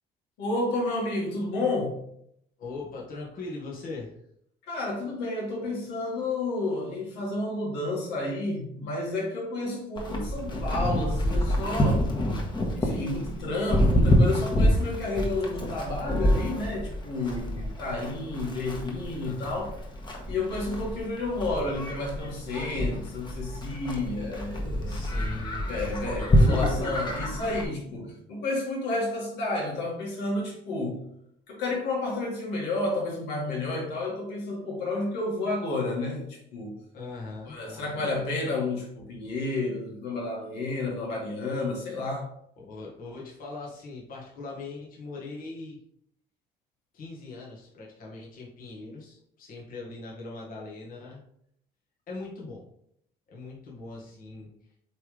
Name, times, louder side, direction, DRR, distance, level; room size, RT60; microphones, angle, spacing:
voice 1, 0.4-2.0 4.7-12.1 12.7-19.8 20.3-25.0 25.7-31.0 31.5-36.7 37.5-42.3, left 2 dB, 85° left, -2 dB, 2.1 m, -31 dB
voice 2, 2.6-4.1 19.2-19.7 24.8-25.8 26.2-27.2 36.9-38.1 42.6-45.8 46.9-51.2 52.1-52.7 53.3-54.5, left 3 dB, 55° left, -3 dB, 1.8 m, -40 dB
Livestock farm animals working animals, 10.0-27.6, equal, 25° left, 1.3 m, -27 dB
7.8 x 3.6 x 3.4 m, 0.70 s
cardioid pair, 110°, 17 cm